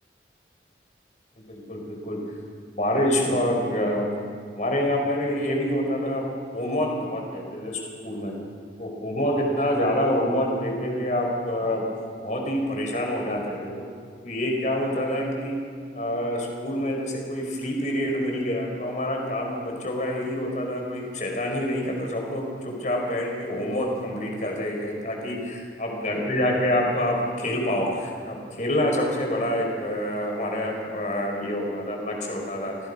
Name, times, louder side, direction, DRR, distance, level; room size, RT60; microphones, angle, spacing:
voice 1, 1.5-2.2 2.8-4.1 4.5-6.2 6.5-8.3 8.8-11.8 12.2-13.8 14.2-15.5 15.9-32.7, left 1 dB, 45° left, 1 dB, 4.9 m, -27 dB
29.5 x 19.5 x 5.6 m, 2.1 s
head